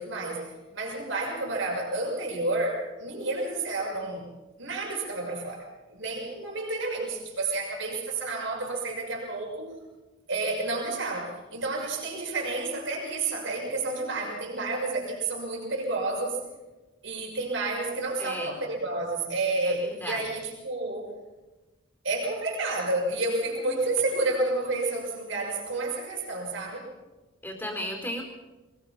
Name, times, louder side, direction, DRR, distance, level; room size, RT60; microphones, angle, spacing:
voice 1, 0.0-4.3 4.6-9.7 10.3-16.4 17.0-21.1 22.0-26.9, right 2 dB, 60° right, -2 dB, 6.2 m, -30 dB
voice 2, 18.2-18.5 19.6-20.2 27.4-28.2, equal, 10° left, 2 dB, 4.2 m, -35 dB
23.0 x 21.0 x 5.9 m, 1.1 s
head